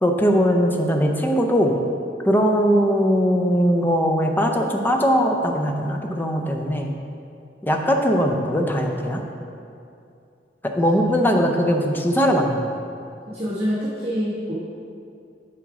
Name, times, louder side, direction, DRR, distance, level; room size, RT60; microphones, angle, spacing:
voice 1, 0.0-1.8 2.2-6.9 7.6-9.2 10.6-12.7, equal, 10° left, 2 dB, 0.5 m, -20 dB
voice 2, 13.3-14.5, equal, 35° right, -10 dB, 1.2 m, -25 dB
7.2 x 5.0 x 4.8 m, 2.5 s
head